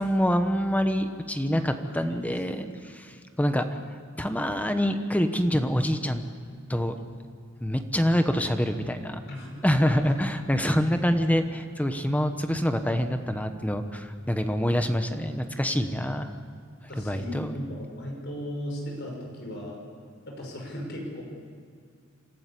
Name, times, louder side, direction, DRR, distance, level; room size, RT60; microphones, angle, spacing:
voice 1, 0.0-2.7 3.0-3.6 4.2-6.2 6.7-6.9 7.6-9.2 9.6-16.3 17.0-17.6, equal, 5° left, 7 dB, 1.0 m, -26 dB
voice 2, 16.9-19.8 20.3-21.2, equal, 60° left, 0 dB, 5.9 m, -36 dB
26.5 x 14.0 x 8.4 m, 2.2 s
head